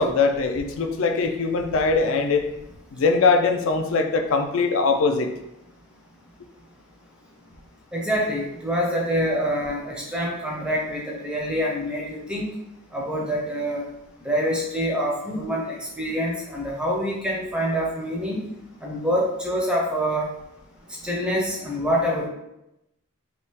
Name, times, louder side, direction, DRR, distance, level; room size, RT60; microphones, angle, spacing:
voice 1, 0.0-2.5 2.9-5.3, left 4 dB, 65° left, 6 dB, 0.4 m, -21 dB
voice 2, 7.9-12.5 12.9-13.8 14.2-18.4 18.8-20.3 21.0-22.3, equal, 5° right, -3 dB, 0.5 m, -26 dB
3.5 x 2.9 x 2.8 m, 0.86 s
head